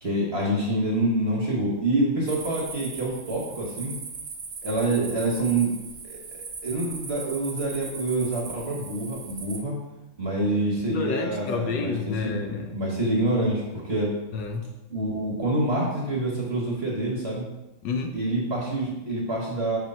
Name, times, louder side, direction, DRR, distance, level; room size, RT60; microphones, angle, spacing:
voice 1, 0.0-3.9 4.6-5.7 6.0-6.2 6.6-9.7 10.2-12.3 12.7-14.1 14.9-17.4 18.1-19.8, right 1 dB, 45° right, -3 dB, 0.9 m, -26 dB
sound 1, 2.3-9.6, right 5 dB, 75° right, 0.6 m, -39 dB
voice 2, 10.9-12.8 14.3-14.7 17.8-18.2, left 4 dB, 70° left, 5 dB, 1.2 m, -29 dB
5.3 x 3.6 x 5.3 m, 1.0 s
omnidirectional pair, 2.2 m